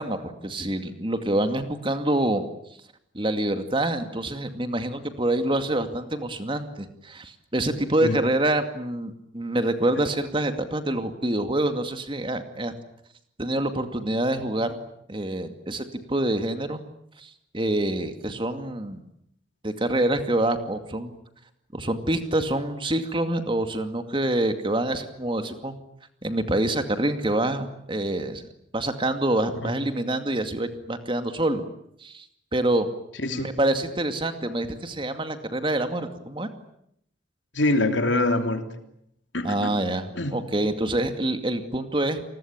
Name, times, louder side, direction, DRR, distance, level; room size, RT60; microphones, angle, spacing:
voice 1, 0.0-2.5 3.1-12.7 13.4-16.8 17.2-19.0 19.6-21.1 21.7-25.8 26.2-28.5 28.7-31.6 32.0-32.2 32.5-32.9 33.3-36.5 39.4-42.2, right 1 dB, 25° right, 8 dB, 2.4 m, -26 dB
voice 2, 33.2-33.5 37.5-38.7 39.3-39.8 40.2-40.4, left 2 dB, 85° left, 7 dB, 3.1 m, -24 dB
29.0 x 20.5 x 8.9 m, 0.75 s
head